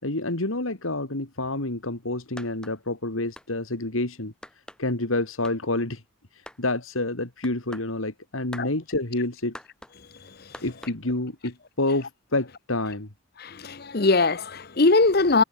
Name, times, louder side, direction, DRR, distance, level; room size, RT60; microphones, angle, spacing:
voice 1, 0.0-4.3 4.8-6.0 6.3-9.5 10.6-13.1, left 2 dB, 80° left, 2.7 m, -28 dB
sound 1, 2.4-2.8 3.4-3.5 4.4-4.8 5.4-5.6 6.5-6.6 7.4-7.9 8.5-8.7 9.5-10.0 10.5-11.0, left 1 dB, 5° left, 7.7 m, -43 dB
voice 2, 13.4-15.4, left 3 dB, 50° left, 0.9 m, -21 dB
head